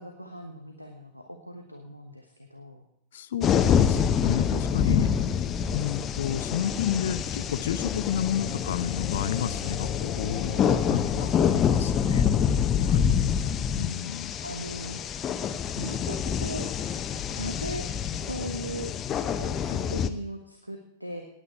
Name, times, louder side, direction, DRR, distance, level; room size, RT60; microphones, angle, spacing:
voice 1, 0.0-2.8 5.0-5.5 10.5-10.9 12.8-13.4 14.4-15.0 15.8-16.7 17.3-17.9 18.1-18.9 19.3-21.2, equal, 90° right, 4 dB, 1.2 m, -39 dB
voice 2, 3.1-5.2 5.7-12.4 12.8-13.1 13.7-14.3, left 10 dB, 60° left, 14 dB, 0.7 m, -31 dB
sound 1, 3.4-20.1, left 7 dB, 25° left, 0.8 m, -26 dB
18.0 x 9.1 x 4.6 m, 0.74 s
figure-of-eight pair, 90°, 0 cm